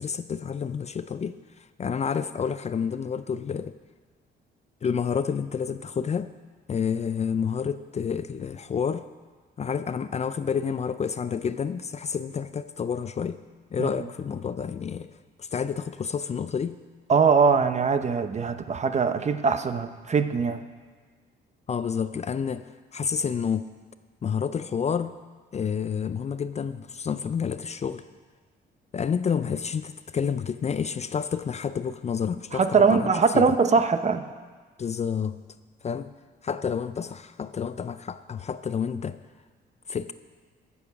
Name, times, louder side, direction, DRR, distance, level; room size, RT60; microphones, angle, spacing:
voice 1, 0.0-1.4 1.8-3.7 4.8-6.3 6.7-9.0 9.6-13.4 13.7-15.1 15.4-16.8 21.7-22.6 22.9-23.7 24.2-25.1 25.5-28.0 28.9-33.1 33.3-33.5 34.8-35.4 35.8-36.1 36.4-39.2 39.9-40.1, left 6 dB, 35° left, 13 dB, 0.4 m, -29 dB
voice 2, 17.1-20.6 32.5-34.3, right 5 dB, 35° right, 10 dB, 0.7 m, -22 dB
15.0 x 7.1 x 5.9 m, 1.4 s
cardioid pair, 90°, 20 cm